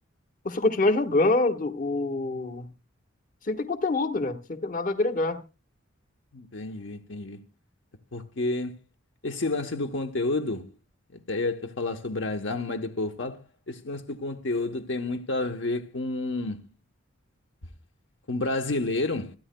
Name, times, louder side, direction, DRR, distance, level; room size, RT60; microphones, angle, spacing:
voice 1, 0.4-2.7 3.5-5.4, left 2 dB, 40° left, 1.3 m, -25 dB
voice 2, 6.3-7.4 8.1-8.7 9.2-10.7 11.1-16.6 18.3-19.3, left 2 dB, 65° left, 1.0 m, -30 dB
26.5 x 10.0 x 2.2 m
head